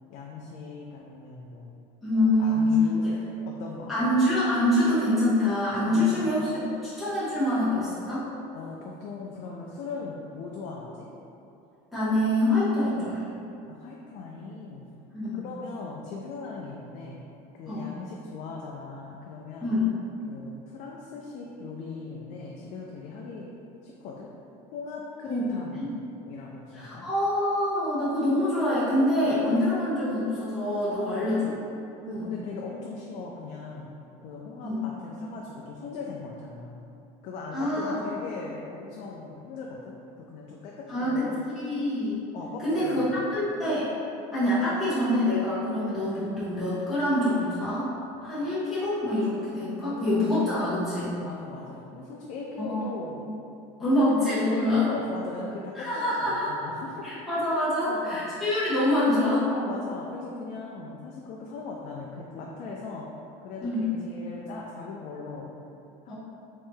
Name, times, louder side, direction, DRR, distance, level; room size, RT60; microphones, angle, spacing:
voice 1, 0.1-1.7 2.2-3.9 5.8-6.3 8.5-11.1 13.7-14.9 15.4-17.2 17.5-19.8 20.3-23.5 23.8-24.3 24.7-26.0 26.2-27.1 29.2-29.5 30.9-31.4 32.0-33.9 34.2-36.8 37.2-41.4 42.3-43.2 49.6-50.1 51.2-53.2 53.8-54.0 54.6-57.3 57.8-58.2 59.5-63.1 63.4-65.5 66.0-66.1, left 4 dB, 50° left, -2 dB, 0.4 m, -39 dB
voice 2, 2.0-2.8 3.0-3.1 3.9-8.3 11.9-13.3 15.1-15.4 17.7-17.9 19.6-19.9 25.3-25.4 25.7-25.9 26.7-31.4 32.1-32.3 34.6-34.8 37.5-38.0 40.9-42.2 42.6-43.9 44.3-47.9 48.2-51.2 52.6-52.9 53.8-54.9 55.7-56.5 57.0-59.5 63.6-63.9 66.1-66.2, left 1 dB, ahead, -14 dB, 0.8 m, -25 dB
3.2 x 2.7 x 3.5 m, 2.7 s
cardioid pair, 140°, 16 cm